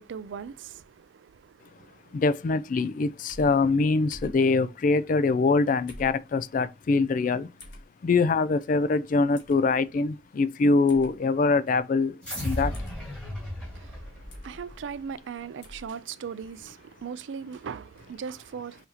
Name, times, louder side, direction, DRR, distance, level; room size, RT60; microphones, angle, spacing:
voice 1, 0.0-2.2 13.7-18.9, right 6 dB, 85° right, 0.4 m, -39 dB
voice 2, 2.1-7.5 8.0-12.7, left 3 dB, 45° left, 0.3 m, -24 dB
sound 1, 3.3-3.5 4.1-4.4 5.9-6.2 7.6-7.8 9.3-9.6 10.9-11.1 12.7-13.0 14.3-14.5 15.6-15.9, left 1 dB, 65° left, 1.5 m, -44 dB
sound 2, 12.2-15.0, equal, 5° left, 1.9 m, -35 dB
5.6 x 2.8 x 2.9 m
head